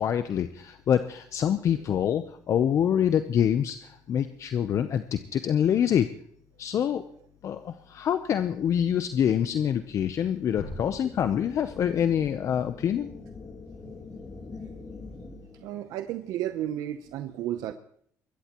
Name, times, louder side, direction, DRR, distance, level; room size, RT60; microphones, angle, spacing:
voice 1, 0.0-6.1 6.6-7.0 7.4-13.1, left 9 dB, 55° left, 9 dB, 0.8 m, -26 dB
sound 1, 10.6-13.5, left 2 dB, 90° left, 5.9 m, -45 dB
sound 2, 10.6-15.7, left 3 dB, 30° left, 2.6 m, -44 dB
voice 2, 15.6-17.7, right 12 dB, 80° right, 9 dB, 0.8 m, -33 dB
22.5 x 16.0 x 3.0 m, 0.64 s
cardioid pair, 90°, 6 cm